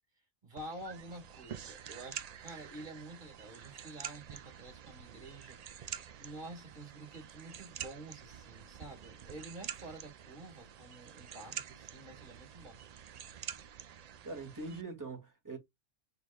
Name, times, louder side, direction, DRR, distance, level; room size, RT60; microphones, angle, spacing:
voice 1, 0.4-12.8, right 2 dB, 40° right, 2.1 m, -49 dB
sound 1, 0.6-14.8, right 8 dB, 85° right, 0.3 m, -47 dB
voice 2, 14.2-15.6, right 3 dB, 15° right, 2.0 m, -43 dB
6.1 x 3.5 x 2.3 m
omnidirectional pair, 1.3 m